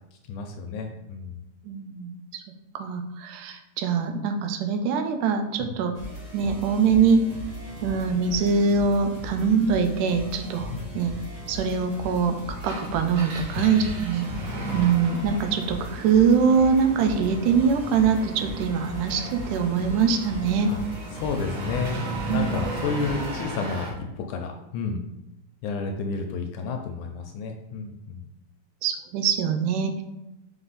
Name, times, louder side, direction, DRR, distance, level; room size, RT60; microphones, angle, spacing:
voice 1, 0.3-1.4 5.6-5.8 10.7-11.1 13.5-13.8 20.7-20.8 21.2-25.0 25.6-28.2, left 4 dB, 75° left, 4 dB, 2.0 m, -31 dB
voice 2, 1.7-2.4 2.7-5.9 6.3-7.2 7.8-11.2 11.5-12.4 12.6-14.3 14.7-20.8 22.3-22.5 28.8-30.0, right 6 dB, 75° right, 6 dB, 2.2 m, -23 dB
sound 1, 5.9-23.4, left 1 dB, 35° right, 1.8 m, -38 dB
Engine, 12.5-24.0, right 2 dB, 60° right, 2.7 m, -36 dB
5.9 x 5.3 x 4.1 m, 0.91 s
omnidirectional pair, 3.8 m